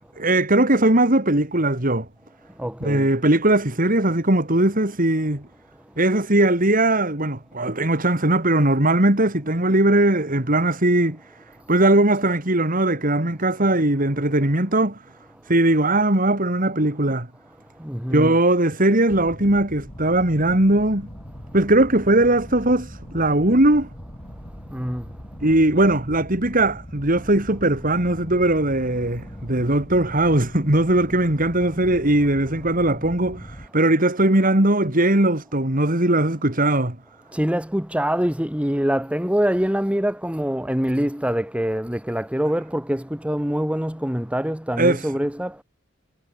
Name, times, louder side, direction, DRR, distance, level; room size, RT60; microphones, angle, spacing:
voice 1, 0.2-2.1 2.8-5.5 6.0-11.2 11.7-15.0 15.5-17.3 18.1-21.1 21.5-23.9 25.4-37.0 44.8-45.1, right 1 dB, 40° right, 3.9 m, -19 dB
voice 2, 2.6-3.1 17.8-18.4 24.7-25.0 37.3-45.6, equal, 5° right, 1.6 m, -24 dB
sound 1, 19.1-33.7, equal, 30° left, 7.9 m, -40 dB
head